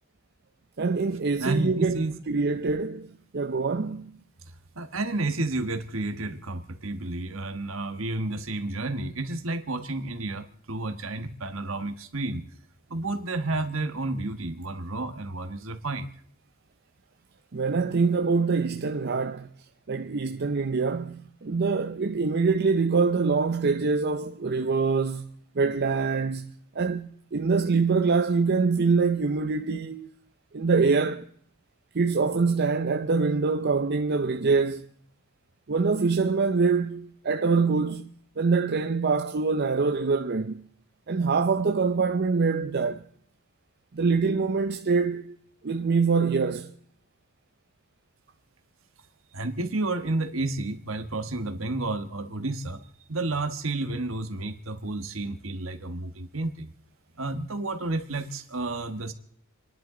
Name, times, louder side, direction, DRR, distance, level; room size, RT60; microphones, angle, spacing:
voice 1, 0.8-4.1 17.5-19.5 19.9-25.3 25.5-30.1 30.5-31.3 31.9-34.9 35.7-40.6 41.1-43.0 43.9-45.4 45.6-46.7, right 4 dB, 50° right, 0.6 m, -25 dB
voice 2, 1.4-2.2 4.7-12.4 12.9-16.1 49.3-56.7 57.2-59.1, right 2 dB, 65° right, 1.4 m, -31 dB
28.5 x 11.0 x 3.8 m
head